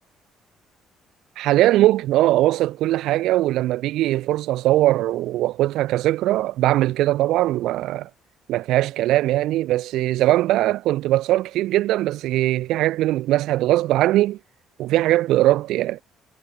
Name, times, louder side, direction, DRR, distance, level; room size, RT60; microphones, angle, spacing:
voice 1, 1.4-8.1 8.5-14.4 14.8-16.0, right 15 dB, 80° right, 0.4 m, -20 dB
cardioid pair, 120°, 0 cm